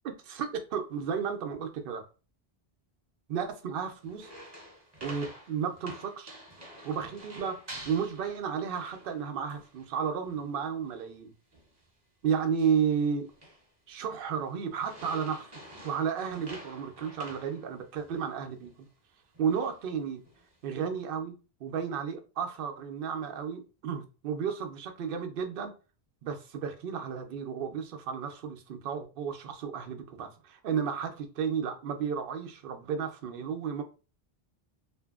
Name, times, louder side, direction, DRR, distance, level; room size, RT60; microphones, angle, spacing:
voice 1, 0.0-2.0 3.3-4.3 5.0-6.3 6.8-7.6 7.8-11.3 12.2-13.3 13.9-18.9 19.4-20.2 20.6-21.3 21.6-25.7 26.2-33.8, right 7 dB, 65° right, 0.7 m, -33 dB
sound 1, 4.0-9.2 9.5-9.9 10.2-10.4 10.9-11.1 11.5-11.8 12.4-12.9 13.2-13.7 14.1-14.4 14.8-18.3 18.6-18.7 19.3-19.8 20.2-20.7, right 1 dB, 25° right, 0.7 m, -49 dB
2.6 x 2.5 x 2.3 m
omnidirectional pair, 1.1 m